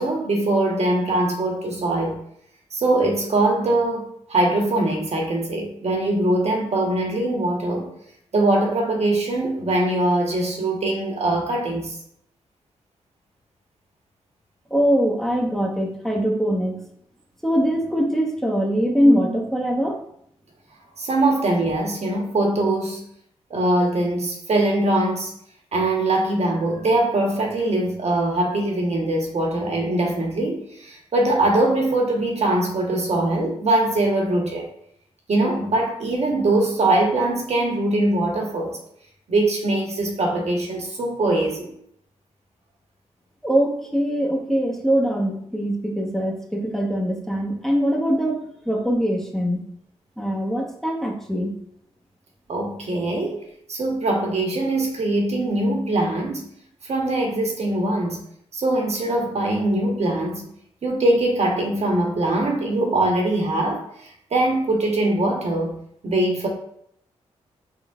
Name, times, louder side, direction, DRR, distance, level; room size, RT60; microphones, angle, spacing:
voice 1, 0.0-2.2 2.7-7.9 8.3-11.9 21.0-23.0 23.5-25.3 25.7-34.7 35.3-38.8 39.3-41.7 52.5-53.4 53.7-56.4 56.8-58.2 58.5-60.4 60.8-65.7 66.0-66.5, right 2 dB, 55° right, 1 dB, 1.2 m, -22 dB
voice 2, 14.7-16.8 17.4-20.0 43.4-49.6 50.2-51.5, equal, 5° left, 1 dB, 1.1 m, -22 dB
4.0 x 3.8 x 2.4 m, 0.71 s
supercardioid pair, 40°, 13 cm